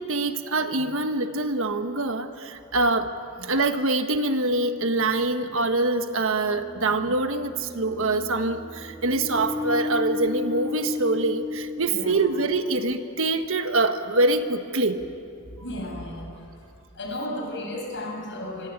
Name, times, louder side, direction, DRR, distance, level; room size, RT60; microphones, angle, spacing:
voice 1, 0.0-3.1 3.4-15.0, right 2 dB, 65° right, 7 dB, 1.5 m, -24 dB
sound 1, 4.5-4.6 6.1-13.0, left 3 dB, 20° left, 2.4 m, -34 dB
voice 2, 11.9-12.3 15.6-16.4 16.9-18.7, left 1 dB, 55° left, 0 dB, 7.5 m, -34 dB
25.0 x 24.5 x 8.9 m, 2.6 s
head